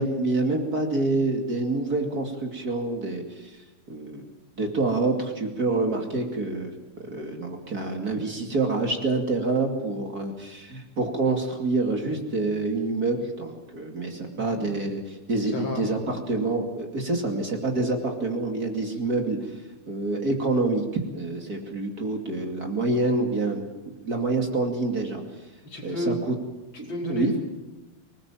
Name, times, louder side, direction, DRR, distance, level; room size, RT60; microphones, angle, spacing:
voice 1, 0.0-3.6 3.9-4.2 4.6-6.7 7.0-19.6 19.9-25.5 25.8-26.3 26.8-27.3, right 3 dB, 45° right, 3 dB, 2.9 m, -27 dB
voice 2, 15.5-15.9 25.6-26.1 26.9-27.4, left 1 dB, 60° left, -1 dB, 5.4 m, -31 dB
25.5 x 19.5 x 7.4 m, 1.1 s
omnidirectional pair, 2.4 m